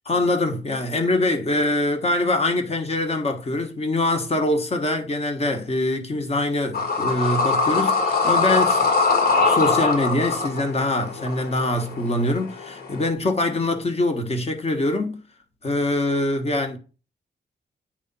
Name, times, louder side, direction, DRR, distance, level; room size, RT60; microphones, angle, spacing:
voice 1, 0.1-8.9 9.4-15.2 15.6-16.8, left 2 dB, 35° left, 1.3 m, -24 dB
sound 1, 6.7-13.1, left 4 dB, 60° left, 1.7 m, -22 dB
8.8 x 3.5 x 5.4 m
wide cardioid pair, 155°, 18 cm